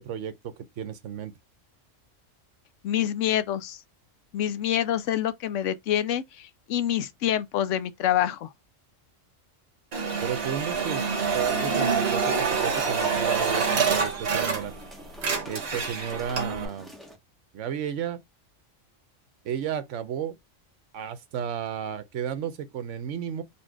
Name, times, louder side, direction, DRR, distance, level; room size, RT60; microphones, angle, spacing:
voice 1, 0.0-1.3 10.2-11.0 11.3-14.7 15.5-16.9 17.5-18.2 19.4-20.4 20.9-23.4, right 8 dB, 70° right, 1.0 m, -33 dB
voice 2, 2.8-3.8 4.3-8.5, left 11 dB, 75° left, 0.9 m, -26 dB
sound 1, 9.9-14.9 15.1-16.7, right 5 dB, 55° right, 1.4 m, -26 dB
sound 2, 11.2-17.2, equal, ahead, 0.9 m, -46 dB
4.3 x 2.7 x 4.5 m
omnidirectional pair, 1.4 m